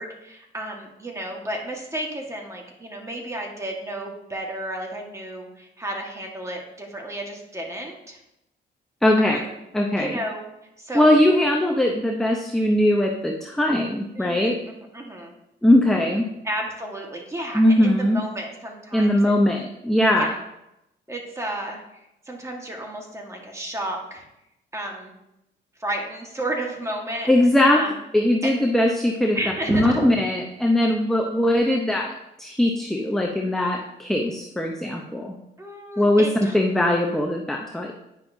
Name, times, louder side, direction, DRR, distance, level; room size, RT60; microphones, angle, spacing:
voice 1, 0.0-8.2 9.2-9.4 9.9-10.5 10.8-11.2 14.1-15.3 16.4-19.3 20.1-20.4 21.1-22.0 22.2-24.3 24.7-25.1 25.8-27.3 27.7-28.0 28.4-28.6 29.3-30.1 33.4-33.8 35.6-36.6, right 1 dB, 15° right, 0 dB, 1.5 m, -32 dB
voice 2, 9.0-9.4 9.7-10.2 10.9-14.6 15.6-16.3 17.5-18.2 18.9-20.3 27.3-27.8 28.1-29.4 29.7-32.1 32.4-35.4 36.0-37.9, left 1 dB, ahead, 1 dB, 0.7 m, -20 dB
9.7 x 5.6 x 2.7 m, 0.87 s
cardioid pair, 90°, 20 cm